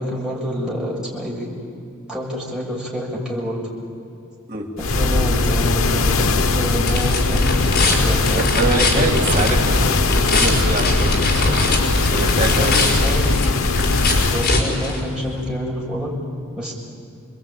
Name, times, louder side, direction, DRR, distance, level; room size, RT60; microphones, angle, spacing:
voice 1, 0.0-1.5 2.1-3.6 4.8-9.5 12.4-13.3 14.3-16.1 16.6-16.7, equal, 5° right, -4 dB, 6.8 m, -28 dB
sound 1, 4.8-14.6, left 2 dB, 85° left, 1.0 m, -19 dB
sound 2, 6.0-15.5, left 3 dB, 50° left, 5.1 m, -23 dB
voice 2, 8.3-11.6 12.0-13.0, right 2 dB, 40° right, 1 dB, 2.4 m, -25 dB
28.5 x 21.5 x 9.1 m, 2.4 s
head